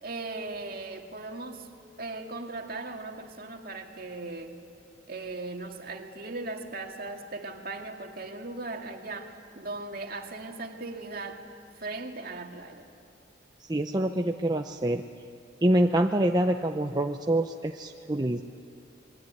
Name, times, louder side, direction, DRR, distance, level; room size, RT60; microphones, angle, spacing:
voice 1, 0.0-1.7 2.0-4.6 5.1-11.4 11.8-12.9, right 3 dB, 45° right, 3 dB, 2.2 m, -38 dB
voice 2, 13.7-15.0 15.6-18.4, right 1 dB, 20° right, 4 dB, 0.7 m, -26 dB
27.5 x 22.5 x 9.6 m, 2.5 s
head